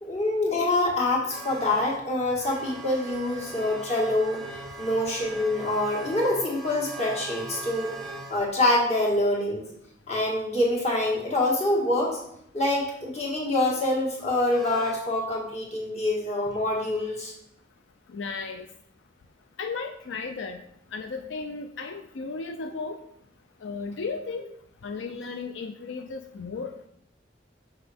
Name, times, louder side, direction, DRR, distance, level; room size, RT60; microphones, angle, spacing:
voice 1, 0.0-4.5 4.8-7.9 8.3-9.6 10.1-12.2 12.5-17.3, left 1 dB, 35° left, -2 dB, 1.7 m, -25 dB
sound 1, 1.3-8.4 12.8-13.0 14.5-15.0 16.4-16.6 18.3-18.4, right 2 dB, ahead, 1.4 m, -40 dB
voice 2, 18.1-18.7 19.6-20.6 20.9-23.0 23.6-24.5 24.8-26.9, left 4 dB, 85° left, 6 dB, 0.4 m, -35 dB
6.1 x 5.5 x 3.5 m, 0.75 s
head